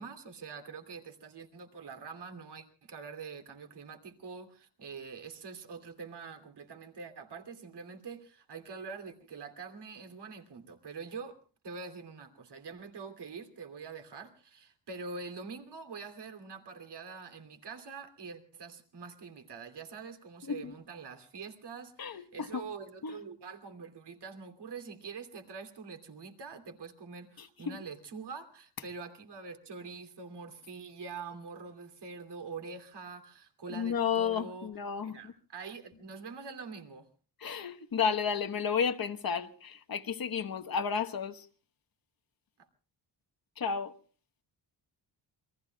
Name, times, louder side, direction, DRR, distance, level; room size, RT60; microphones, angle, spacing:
voice 1, 0.0-11.4 11.6-34.7 35.0-37.1, right 5 dB, 65° right, 2.9 m, -45 dB
voice 2, 22.0-22.6 23.0-23.1 27.4-27.8 33.7-35.2 37.4-41.5 43.6-43.9, left 7 dB, 50° left, 1.2 m, -32 dB
28.5 x 22.0 x 2.3 m
wide cardioid pair, 155°, 44 cm